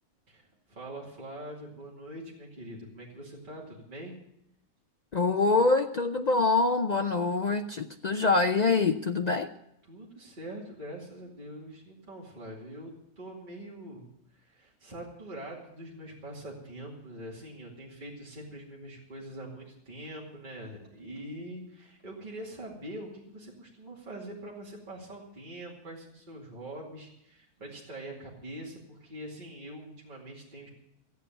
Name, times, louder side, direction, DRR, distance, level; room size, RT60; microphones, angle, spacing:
voice 1, 0.3-4.2 9.9-14.1 14.3-30.7, right 1 dB, 30° right, -4 dB, 2.6 m, -43 dB
voice 2, 5.1-9.5, left 3 dB, 80° left, 6 dB, 0.3 m, -25 dB
15.0 x 8.4 x 9.0 m, 0.80 s
omnidirectional pair, 1.6 m